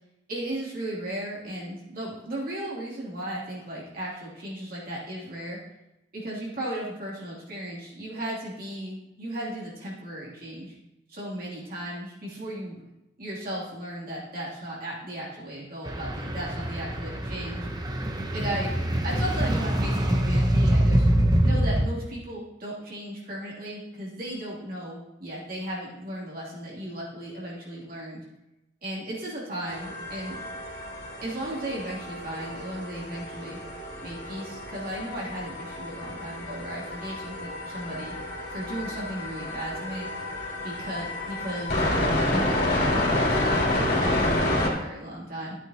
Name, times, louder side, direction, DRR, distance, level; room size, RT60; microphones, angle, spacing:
voice 1, 0.3-5.6 6.1-10.7 11.1-12.9 13.2-17.7 18.3-18.7 19.0-21.1 21.4-28.2 28.8-30.4 31.2-33.6 34.0-38.2 38.5-40.1 40.6-41.9 42.3-45.6, right 1 dB, 50° right, -6 dB, 2.8 m, -35 dB
sound 1, 15.9-21.9, right 1 dB, 20° right, 0.9 m, -24 dB
sound 2, 29.7-44.7, left 1 dB, 50° left, 3.1 m, -29 dB
12.0 x 9.0 x 2.9 m, 0.94 s
head